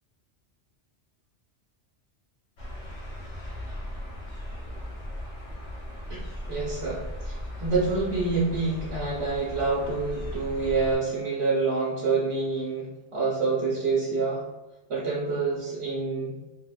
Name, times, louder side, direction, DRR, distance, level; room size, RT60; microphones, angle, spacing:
sound 1, 2.6-11.0, left 1 dB, 80° left, 0.9 m, -37 dB
voice 1, 6.5-14.4 14.9-16.4, right 4 dB, 70° right, -7 dB, 0.9 m, -27 dB
3.3 x 2.2 x 2.2 m, 1.1 s
omnidirectional pair, 1.2 m